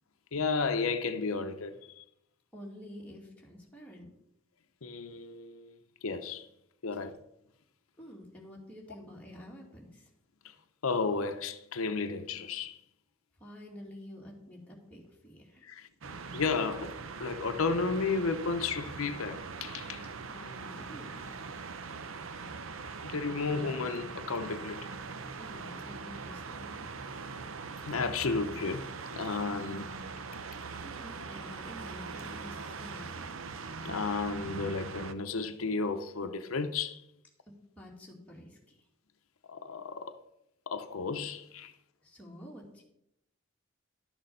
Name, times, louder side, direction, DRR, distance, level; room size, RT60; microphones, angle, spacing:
voice 1, 0.3-2.0 4.8-6.5 6.8-7.2 10.4-10.5 10.8-12.8 15.6-15.9 16.3-20.0 23.0-24.9 27.5-30.0 33.8-37.0 39.5-40.2 40.7-41.7, left 4 dB, 85° left, 0.7 m, -33 dB
voice 2, 2.5-4.1 8.0-10.1 13.4-15.7 20.3-21.3 25.4-27.2 30.8-33.4 37.5-38.9 42.0-42.8, equal, 5° left, 2.2 m, -49 dB
sound 1, 16.0-35.1, right 4 dB, 75° right, 0.7 m, -42 dB
12.0 x 6.6 x 5.5 m
head